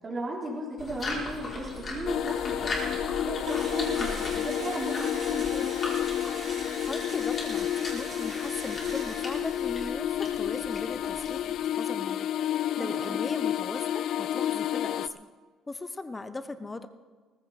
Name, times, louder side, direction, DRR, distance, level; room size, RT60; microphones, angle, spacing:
voice 1, 0.0-5.8 12.7-13.2, right 1 dB, 25° right, -2 dB, 3.5 m, -36 dB
sound 1, 0.8-11.6, left 2 dB, 30° left, 4.0 m, -39 dB
sound 2, 2.1-15.1, left 11 dB, 60° left, 0.4 m, -30 dB
Engine / Drill, 3.4-10.0, right 4 dB, 40° right, 3.4 m, -43 dB
voice 2, 6.9-15.3 15.7-16.9, left 3 dB, 15° left, 12 dB, 0.7 m, -38 dB
18.5 x 15.0 x 4.1 m, 1.5 s
cardioid pair, 130°, 0 cm